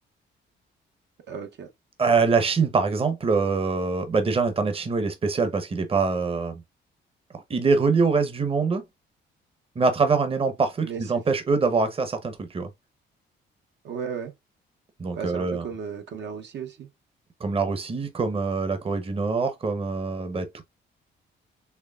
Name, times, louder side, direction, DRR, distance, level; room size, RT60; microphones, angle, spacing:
voice 1, 1.3-1.7 10.8-11.2 13.8-14.3 15.1-16.9, right 6 dB, 60° right, 0.8 m, -35 dB
voice 2, 2.0-6.6 7.3-8.8 9.8-12.7 15.0-15.6 17.4-20.6, right 4 dB, 30° right, 0.8 m, -24 dB
4.4 x 3.1 x 2.3 m
cardioid pair, 90°, 20 cm